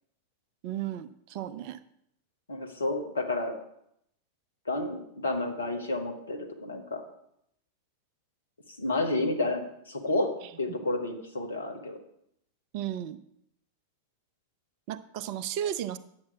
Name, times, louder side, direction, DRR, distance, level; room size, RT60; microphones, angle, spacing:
voice 1, 0.6-1.8 12.7-13.2 14.9-16.0, right 11 dB, 45° right, 15 dB, 0.5 m, -34 dB
voice 2, 2.5-3.6 4.7-7.0 8.8-12.0, left 2 dB, 75° left, 4 dB, 1.3 m, -30 dB
9.6 x 7.5 x 4.7 m, 0.74 s
figure-of-eight pair, 90°, 0 cm